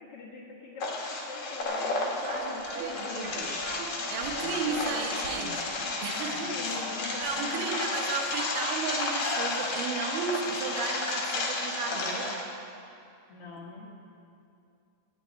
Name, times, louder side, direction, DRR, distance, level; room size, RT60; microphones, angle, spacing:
voice 1, 0.0-3.4 4.6-5.0 6.1-8.2 13.3-13.9, left 3 dB, 75° left, -3 dB, 1.3 m, -43 dB
sound 1, 0.8-12.4, left 2 dB, 60° left, 1.6 m, -32 dB
sound 2, 1.6-8.5 8.8-8.9 9.4-9.6 9.8-9.9, right 3 dB, 50° right, 2.7 m, -44 dB
voice 2, 2.2-3.5 4.1-5.7 6.0-6.8 7.2-12.4, right 5 dB, 65° right, 1 dB, 3.0 m, -34 dB
sound 3, 3.4-11.9, left 1 dB, 10° right, 1.7 m, -51 dB
14.0 x 7.0 x 9.3 m, 2.5 s
omnidirectional pair, 5.2 m